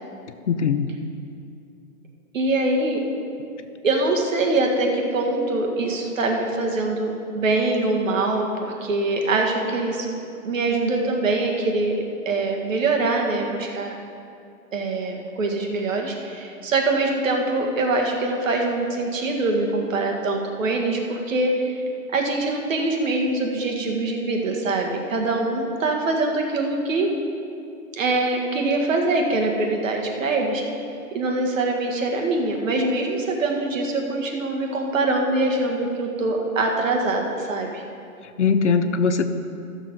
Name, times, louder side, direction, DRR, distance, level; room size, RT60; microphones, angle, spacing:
voice 1, 0.5-0.9 38.4-39.3, left 5 dB, 50° left, 10 dB, 0.6 m, -20 dB
voice 2, 2.3-3.0 3.8-10.2 10.4-11.9 12.3-14.0 14.7-21.8 22.1-27.1 28.0-30.6 31.1-37.8, right 2 dB, 55° right, 1 dB, 1.8 m, -23 dB
13.5 x 6.9 x 5.4 m, 2.6 s
hypercardioid pair, 165°, 45 cm